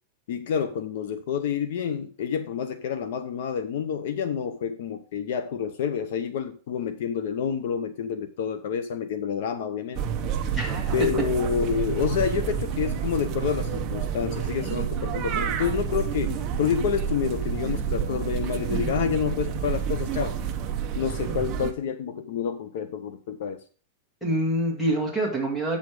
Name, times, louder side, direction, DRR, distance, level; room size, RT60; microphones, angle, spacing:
voice 1, 0.3-10.0 10.9-20.3 20.9-23.6, left 7 dB, 55° left, 11 dB, 0.7 m, -28 dB
sound 1, 9.9-21.7, right 8 dB, 25° right, 0.8 m, -29 dB
voice 2, 10.5-11.1 24.2-25.8, right 1 dB, 5° left, 1 dB, 1.7 m, -26 dB
8.4 x 6.3 x 4.7 m, 0.39 s
supercardioid pair, 180°, 0 cm